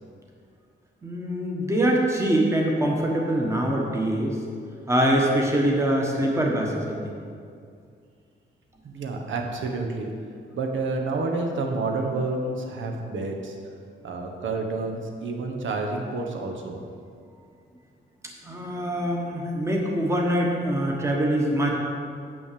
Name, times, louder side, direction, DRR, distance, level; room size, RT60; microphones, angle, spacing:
voice 1, 1.0-4.4 4.9-7.2 18.4-21.7, right 1 dB, 15° right, -1 dB, 1.3 m, -24 dB
voice 2, 8.8-10.1 10.5-13.6 14.0-16.8, right 3 dB, 75° right, 2 dB, 1.3 m, -29 dB
8.6 x 6.1 x 6.9 m, 2.3 s
wide cardioid pair, 140°, 20 cm